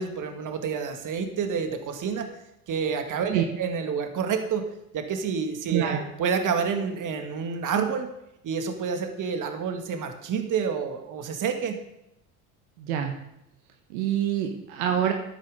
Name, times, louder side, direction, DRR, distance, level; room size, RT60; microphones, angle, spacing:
voice 1, 0.0-2.3 2.7-4.7 4.9-8.1 8.4-11.8, right 6 dB, 45° right, 6 dB, 2.1 m, -28 dB
voice 2, 12.8-13.1 13.9-15.1, right 10 dB, 75° right, 4 dB, 1.5 m, -26 dB
13.5 x 10.5 x 3.8 m, 0.82 s
hypercardioid pair, 70°, 43 cm